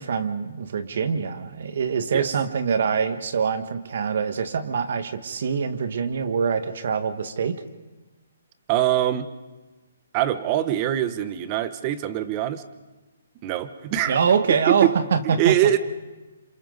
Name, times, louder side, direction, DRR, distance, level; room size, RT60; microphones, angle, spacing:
voice 1, 0.0-7.6 14.1-15.5, right 6 dB, 60° right, 9 dB, 1.6 m, -24 dB
voice 2, 8.7-9.3 10.1-12.6 13.4-14.2 14.7-15.0 15.2-15.8, right 13 dB, 25° right, 12 dB, 1.0 m, -23 dB
28.0 x 27.0 x 4.0 m, 1.1 s
hypercardioid pair, 160°, 0 cm